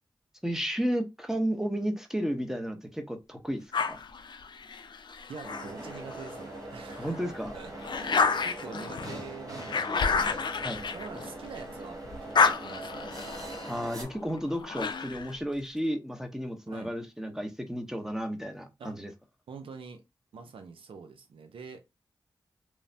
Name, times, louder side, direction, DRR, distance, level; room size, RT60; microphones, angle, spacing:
voice 1, 0.4-4.0 7.0-7.5 10.6-10.8 13.7-19.1, equal, 5° right, 0.8 m, -33 dB
sound 1, 3.7-6.4 6.9-11.7 12.1-15.4, left 5 dB, 60° left, 0.4 m, -30 dB
voice 2, 5.3-10.4 10.7-13.1 16.7-16.9 18.8-19.0 19.5-20.0 20.3-21.9, right 5 dB, 85° right, 0.5 m, -45 dB
sound 2, 5.4-14.0, right 2 dB, 40° right, 1.1 m, -42 dB
3.1 x 2.0 x 2.6 m
cardioid pair, 40°, 9 cm